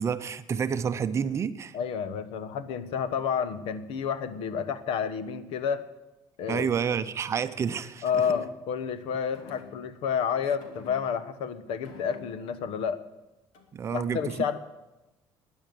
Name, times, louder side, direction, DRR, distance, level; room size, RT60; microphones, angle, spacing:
voice 1, 0.0-1.8 6.5-8.2 13.7-14.6, right 7 dB, 30° right, 11 dB, 0.7 m, -29 dB
voice 2, 1.7-5.9 6.4-6.7 8.0-13.0 13.9-14.6, left 7 dB, 70° left, 13 dB, 1.2 m, -30 dB
sound 1, 8.1-8.7 9.3-10.2 10.6-11.4 11.8-12.6 13.5-13.9, left 5 dB, 90° left, 2.4 m, -47 dB
19.0 x 10.0 x 7.0 m, 1.0 s
cardioid pair, 150°, 10 cm